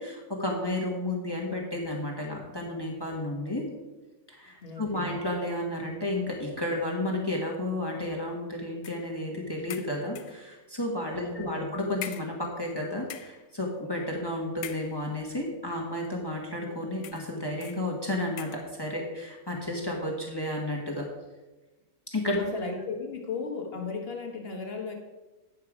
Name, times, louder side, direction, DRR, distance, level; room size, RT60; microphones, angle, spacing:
voice 1, 0.0-3.6 4.3-21.1 22.1-22.4, left 1 dB, 15° left, -1 dB, 1.4 m, -32 dB
voice 2, 4.6-5.2 11.2-11.7 22.4-24.9, left 4 dB, 45° left, 2 dB, 1.4 m, -36 dB
sound 1, 8.8-9.1 9.7-10.5 11.3-11.4 12.0-12.8 13.0-13.5 14.6-15.3 16.0-16.2 17.0-17.3 17.6-17.8 18.4-18.7, left 11 dB, 75° left, 1.0 m, -43 dB
9.4 x 6.8 x 4.9 m, 1.1 s
omnidirectional pair, 1.6 m